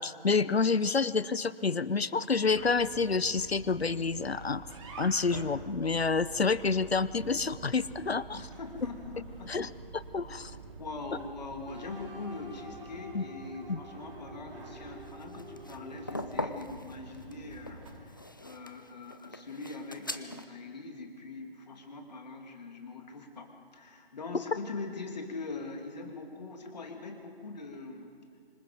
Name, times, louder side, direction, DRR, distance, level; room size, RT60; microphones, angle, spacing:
voice 1, 0.0-4.6 5.0-8.4 9.5-10.5 13.1-13.2 13.7-13.8, left 4 dB, 85° left, 17 dB, 0.8 m, -28 dB
sound 1, 2.5-18.0, right 4 dB, 30° right, 2.6 m, -48 dB
voice 2, 8.3-9.5 10.8-28.1, left 3 dB, 45° left, 3 dB, 2.8 m, -42 dB
sound 2, 11.7-16.6, right 1 dB, 65° right, 4.2 m, -49 dB
sound 3, 15.1-20.4, left 1 dB, 20° left, 0.4 m, -41 dB
26.0 x 20.0 x 5.3 m, 2.2 s
figure-of-eight pair, 150°, 30 cm